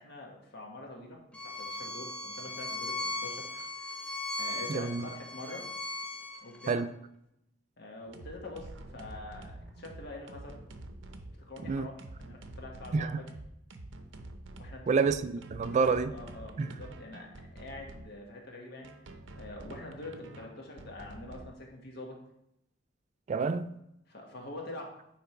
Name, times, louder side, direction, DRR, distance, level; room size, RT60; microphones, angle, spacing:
voice 1, 0.0-5.7 6.4-6.8 7.8-10.6 11.4-11.9 12.2-13.1 14.5-15.0 15.6-18.9 19.3-22.2 24.1-24.9, left 2 dB, 60° left, 1.5 m, -45 dB
Bowed string instrument, 1.3-6.8, left 2 dB, 5° left, 0.6 m, -38 dB
voice 2, 4.7-5.1 6.7-6.9 11.7-11.9 12.9-13.2 14.9-16.1 16.6-16.8 23.3-23.7, right 4 dB, 40° right, 0.3 m, -28 dB
sound 1, 8.1-18.1 18.8-21.5, right 2 dB, 70° right, 0.7 m, -47 dB
9.2 x 3.5 x 4.4 m
head